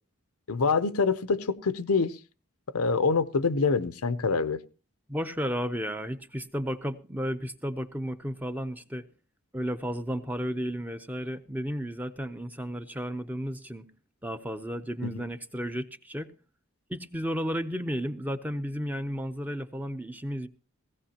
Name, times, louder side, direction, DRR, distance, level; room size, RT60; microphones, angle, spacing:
voice 1, 0.5-2.2 2.7-4.6 15.0-15.2, left 4 dB, 90° left, 0.7 m, -26 dB
voice 2, 5.1-9.0 9.5-13.9 14.2-16.3 16.9-20.5, equal, 10° right, 0.6 m, -33 dB
17.0 x 16.5 x 2.9 m
head